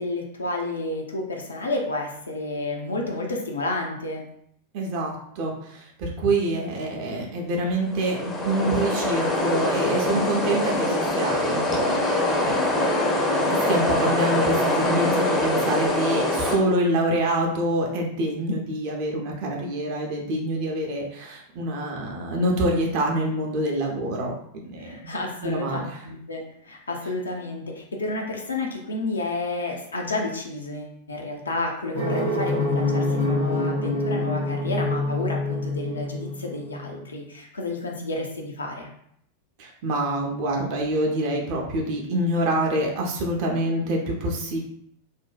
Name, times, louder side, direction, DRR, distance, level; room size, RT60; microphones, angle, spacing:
voice 1, 0.0-4.2 14.9-15.0 24.8-38.9, left 2 dB, 75° left, 1 dB, 0.5 m, -31 dB
voice 2, 4.7-12.7 13.5-25.1 25.4-26.0 39.6-44.6, right 1 dB, 45° right, 0 dB, 0.6 m, -26 dB
sound 1, 7.9-16.6, left 1 dB, 15° left, 0.5 m, -23 dB
sound 2, 31.9-37.0, left 2 dB, 90° right, 0.7 m, -26 dB
2.5 x 2.1 x 2.4 m, 0.70 s
figure-of-eight pair, 90°, 0 cm